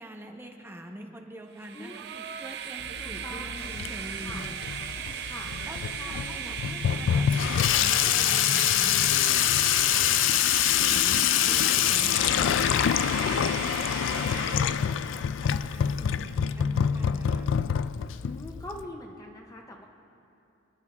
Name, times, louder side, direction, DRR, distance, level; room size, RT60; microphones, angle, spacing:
voice 1, 0.0-2.0 2.4-4.6 4.9-9.0 9.4-10.2 10.5-17.5, equal, 15° right, 3 dB, 0.9 m, -45 dB
Train, 1.5-15.0, right 9 dB, 60° right, 0.5 m, -37 dB
voice 2, 1.7-2.3 3.0-3.7 4.2-4.5 5.2-5.5 6.0-6.6 9.1-9.5 18.2-19.9, left 1 dB, 20° left, 1 dB, 0.6 m, -43 dB
Water tap faucet / Sink (filling or washing), 2.8-18.8, left 10 dB, 80° left, 0.3 m, -25 dB
sound 1, 3.5-9.0, left 5 dB, 65° left, 1.4 m, -51 dB
26.0 x 10.5 x 2.4 m, 2.7 s
head